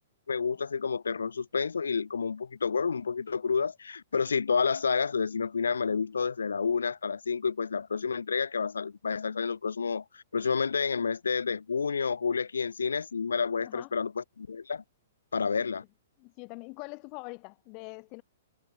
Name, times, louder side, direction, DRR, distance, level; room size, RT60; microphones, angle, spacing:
voice 1, 0.3-14.8 15.3-15.8, left 5 dB, 70° left, 2.5 m, -29 dB
voice 2, 13.6-13.9 15.3-15.7 16.2-18.2, left 33 dB, 35° left, 8.0 m, -44 dB
figure-of-eight pair, 110°, 0 cm